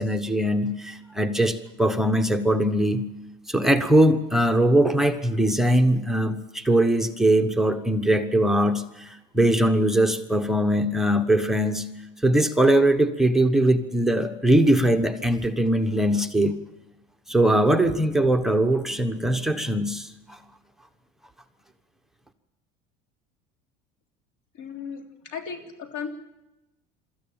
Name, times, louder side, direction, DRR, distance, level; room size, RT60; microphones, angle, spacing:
voice 1, 0.0-3.0 3.5-11.9 12.2-16.5 17.3-20.4, right 1 dB, ahead, 5 dB, 1.1 m, -21 dB
voice 2, 24.6-26.1, left 6 dB, 80° left, 4 dB, 3.4 m, -36 dB
23.0 x 14.0 x 8.8 m, 0.99 s
cardioid pair, 125°, 18 cm